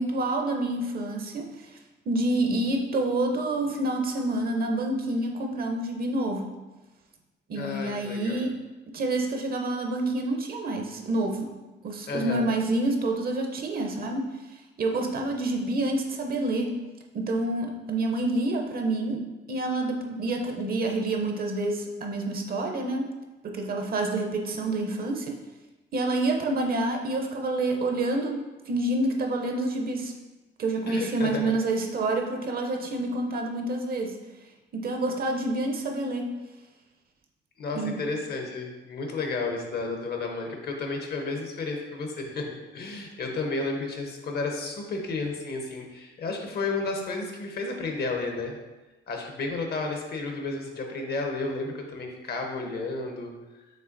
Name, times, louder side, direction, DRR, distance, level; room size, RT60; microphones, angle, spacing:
voice 1, 0.0-1.8 2.1-6.5 7.5-8.5 8.9-11.5 11.8-14.2 14.8-16.8 17.1-19.2 19.5-23.1 23.4-25.4 25.9-30.1 30.6-34.2 34.7-36.3 37.7-38.0, right 2 dB, 50° right, 2 dB, 0.7 m, -28 dB
voice 2, 7.5-8.4 12.1-12.5 30.9-31.5 37.6-48.6 49.1-53.3, left 3 dB, 55° left, 2 dB, 0.8 m, -32 dB
5.4 x 3.3 x 2.6 m, 1.1 s
cardioid pair, 90°, 20 cm